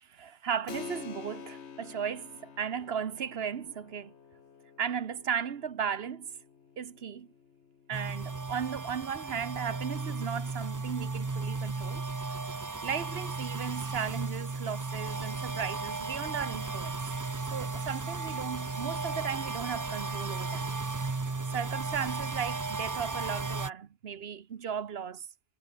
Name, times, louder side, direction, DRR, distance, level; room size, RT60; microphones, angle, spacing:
voice 1, 0.0-4.1 4.8-6.3 6.8-7.3 7.9-17.0 17.5-20.8 21.5-25.3, right 7 dB, 50° right, 1.1 m, -36 dB
Keyboard (musical), 0.7-10.9, left 6 dB, 55° left, 1.5 m, -49 dB
sound 1, 7.9-23.7, right 3 dB, 25° right, 0.4 m, -35 dB
omnidirectional pair, 1.4 m